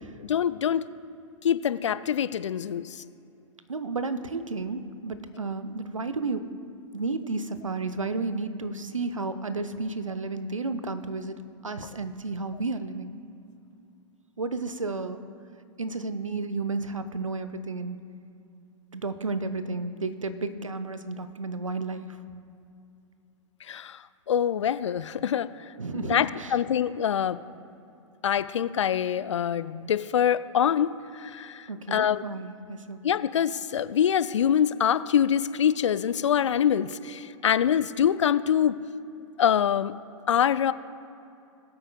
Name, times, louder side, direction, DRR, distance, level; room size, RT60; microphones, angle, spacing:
voice 1, 0.2-0.8 1.4-3.0 23.6-25.5 25.9-27.4 28.2-32.2 33.0-38.8 39.4-39.9 40.3-40.7, left 9 dB, 65° left, 15 dB, 0.4 m, -25 dB
voice 2, 3.7-6.4 6.9-11.4 11.6-13.1 14.4-15.2 15.8-18.0 18.9-22.2 25.8-26.5 31.7-33.0, right 3 dB, 85° right, 11 dB, 0.7 m, -32 dB
20.5 x 8.7 x 2.3 m, 2.7 s
figure-of-eight pair, 105°, 16 cm